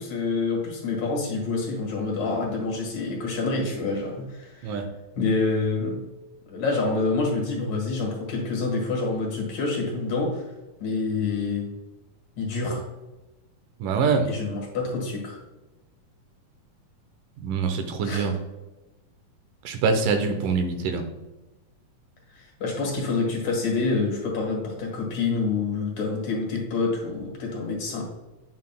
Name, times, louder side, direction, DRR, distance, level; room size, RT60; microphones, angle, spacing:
voice 1, 0.0-4.8 5.2-6.0 6.5-10.4 10.8-11.7 12.4-12.8 14.3-15.4 18.0-18.3 22.3-28.0, left 3 dB, 60° left, -1 dB, 2.8 m, -27 dB
voice 2, 13.8-14.3 17.4-18.3 19.6-21.1, right 5 dB, 80° right, 6 dB, 2.3 m, -24 dB
9.3 x 6.6 x 2.3 m, 1.1 s
omnidirectional pair, 3.8 m